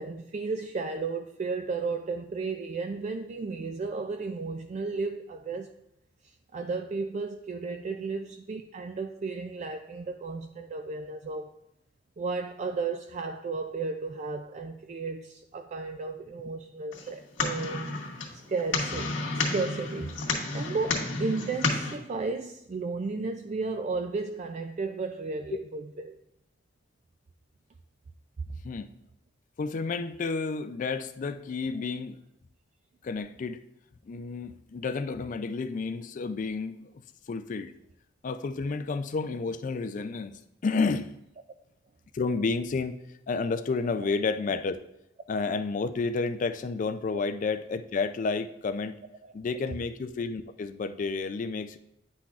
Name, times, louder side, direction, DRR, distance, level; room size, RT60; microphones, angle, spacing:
voice 1, 0.0-5.7 6.5-11.5 12.2-18.0 18.3-26.2 44.0-44.1, right 4 dB, 40° right, 0.3 m, -34 dB
sound 1, 16.9-21.9, left 3 dB, 85° left, 1.8 m, -31 dB
voice 2, 29.6-32.2 33.0-33.6 34.1-36.9 37.3-37.7 38.2-40.3 40.6-41.1 42.1-43.0 43.3-44.8 45.3-49.0 49.3-51.8, left 4 dB, 45° left, 0.3 m, -30 dB
9.8 x 5.9 x 2.4 m
head